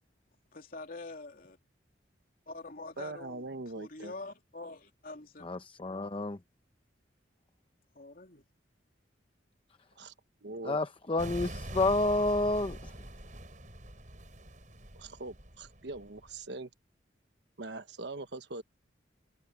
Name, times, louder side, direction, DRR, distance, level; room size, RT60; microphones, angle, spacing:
voice 1, 0.5-1.6 2.5-3.4 3.8-5.5 8.0-8.4, left 3 dB, 50° left, 3.0 m, -45 dB
voice 2, 3.0-4.2 10.0-10.1 10.4-10.8 15.0-16.7 17.6-18.6, right 2 dB, 65° right, 1.2 m, -42 dB
voice 3, 5.4-6.4 10.6-12.8, left 2 dB, 30° left, 0.7 m, -29 dB
sound 1, 11.2-16.4, right 1 dB, 45° right, 6.7 m, -44 dB
head